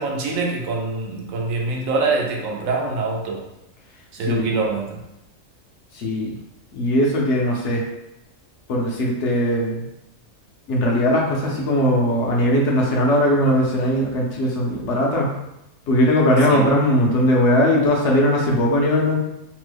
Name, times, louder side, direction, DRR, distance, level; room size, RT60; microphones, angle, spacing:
voice 1, 0.0-3.4 4.1-5.0 16.5-16.7, right 3 dB, 80° right, 0 dB, 1.0 m, -24 dB
voice 2, 4.2-4.6 5.9-6.4 6.7-7.8 8.7-9.8 10.7-15.3 15.9-19.2, equal, 65° left, -2 dB, 0.8 m, -19 dB
3.0 x 2.0 x 3.2 m, 0.87 s
omnidirectional pair, 1.4 m